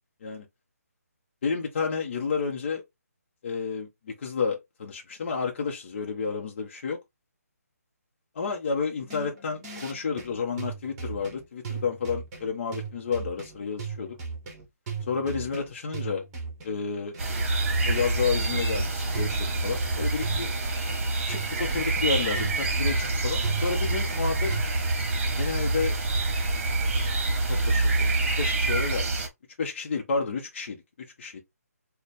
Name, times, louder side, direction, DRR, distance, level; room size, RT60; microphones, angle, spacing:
voice 1, 1.4-2.8 3.4-7.0 8.3-14.2 15.1-16.2 16.6-17.1 17.9-20.5 21.3-24.5 25.4-25.9 27.5-28.1 28.4-29.2 29.6-30.8 31.2-31.4, left 5 dB, 45° left, 0.7 m, -30 dB
sound 1, 9.1-24.6, right 5 dB, 25° right, 1.3 m, -37 dB
sound 2, 17.2-29.3, right 2 dB, 45° right, 1.1 m, -26 dB
4.1 x 2.2 x 3.4 m
figure-of-eight pair, 150°, 9 cm